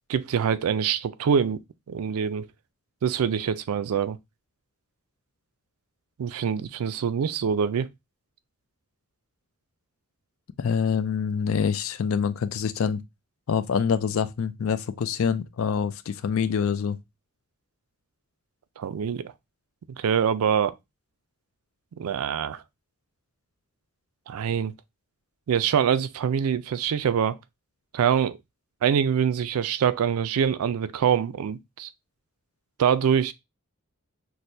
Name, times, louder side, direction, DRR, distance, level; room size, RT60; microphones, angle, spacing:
voice 1, 0.1-1.6 1.9-2.5 3.0-4.2 6.2-7.9 18.8-19.3 20.0-20.7 22.0-22.6 24.3-24.7 25.5-27.4 27.9-28.4 28.8-31.9 32.8-33.3, right 7 dB, 85° right, 0.4 m, -24 dB
voice 2, 10.6-13.0 13.5-17.0, left 6 dB, 70° left, 0.4 m, -26 dB
6.1 x 2.1 x 2.6 m
head